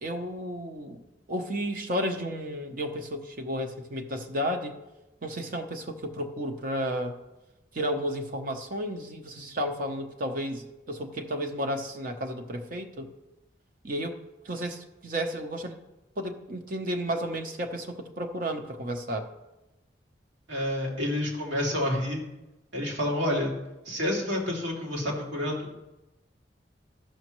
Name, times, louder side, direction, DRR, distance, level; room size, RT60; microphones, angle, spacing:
voice 1, 0.0-4.8 5.2-7.2 7.7-13.1 13.8-14.2 14.4-15.8 16.2-19.3, equal, 50° right, 5 dB, 0.8 m, -32 dB
voice 2, 20.5-22.2 22.7-23.5 23.9-25.7, left 1 dB, 85° right, -2 dB, 2.4 m, -29 dB
14.0 x 6.2 x 3.1 m, 1.0 s
head